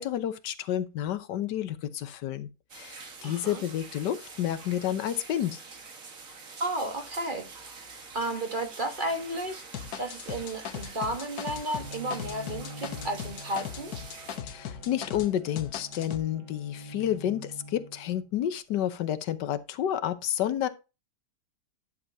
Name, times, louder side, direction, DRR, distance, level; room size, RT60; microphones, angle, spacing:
voice 1, 0.0-2.5 2.7-3.0 3.2-5.6 14.4-20.7, left 11 dB, 80° left, 1.4 m, -30 dB
sound 1, 2.7-14.4, right 4 dB, 50° right, 1.9 m, -46 dB
voice 2, 3.2-3.6 6.6-7.5 8.1-9.6 10.0-13.9, right 1 dB, 30° right, 1.4 m, -33 dB
sound 2, 9.7-15.3 15.6-16.2, left 8 dB, 65° left, 1.4 m, -38 dB
Bowed string instrument, 11.8-18.5, equal, 85° right, 5.1 m, -46 dB
11.0 x 6.6 x 2.7 m
omnidirectional pair, 1.8 m